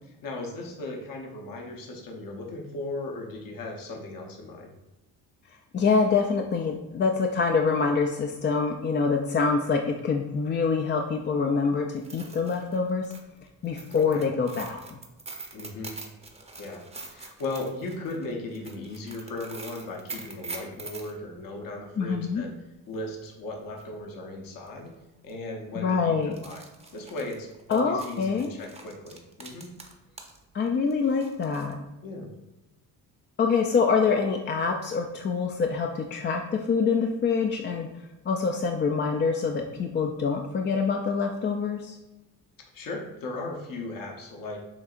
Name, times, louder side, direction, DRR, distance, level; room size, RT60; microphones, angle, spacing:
voice 1, 0.2-4.7 13.9-14.2 15.5-16.0 16.6-22.5 22.9-24.9 25.2-26.6 26.9-29.7 32.0-32.3 42.7-44.6, left 2 dB, 60° left, 1 dB, 0.9 m, -37 dB
voice 2, 5.7-13.1 13.6-15.0 22.0-22.4 25.8-26.4 27.7-28.5 30.5-31.7 33.4-37.9 38.2-42.0, left 5 dB, 30° left, 2 dB, 0.4 m, -25 dB
sound 1, 11.9-21.1 23.3-23.4 23.8-23.9 24.7-24.9 25.2-25.3 26.2-30.4 30.7-31.7, right 3 dB, 15° right, 0.7 m, -44 dB
7.0 x 2.7 x 2.4 m, 1.0 s
cardioid pair, 80°, 39 cm